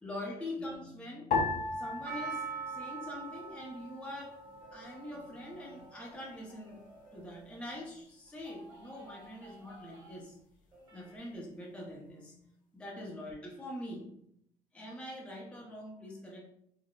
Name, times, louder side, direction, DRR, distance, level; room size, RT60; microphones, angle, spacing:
voice 1, 0.0-1.4 1.7-4.4 4.7-10.4 10.9-12.4 12.7-14.2 14.7-16.4, left 1 dB, 5° left, -3 dB, 0.6 m, -44 dB
sound 1, 1.3-3.8 4.1-5.0 5.6-6.0, left 4 dB, 50° left, 0.5 m, -36 dB
Percussion, 2.1-6.4 6.7-6.8, right 4 dB, 70° right, 0.7 m, -44 dB
sound 2, 4.6-7.8 8.3-10.4 10.7-11.2, right 2 dB, 25° right, 1.4 m, -57 dB
4.0 x 2.0 x 2.2 m, 0.74 s
cardioid pair, 110°, 17 cm